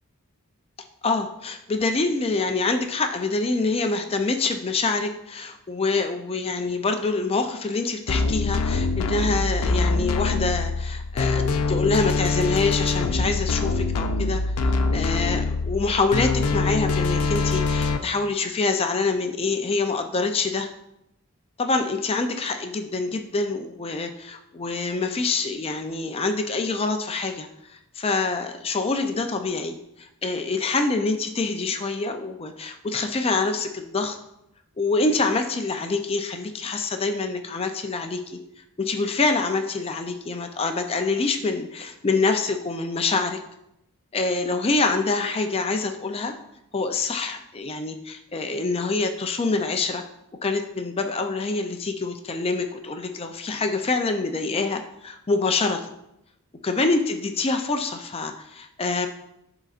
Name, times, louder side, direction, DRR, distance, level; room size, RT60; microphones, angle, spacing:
voice 1, 1.0-14.5 14.9-20.7 21.6-27.5 28.0-34.2 34.8-38.4 38.8-43.4 44.1-46.3 46.7-50.0 50.4-55.9 56.6-59.1, left 3 dB, 25° left, 6 dB, 0.5 m, -26 dB
sound 1, 8.1-18.0, left 3 dB, 80° left, 0.5 m, -24 dB
11.5 x 3.9 x 2.5 m, 0.81 s
head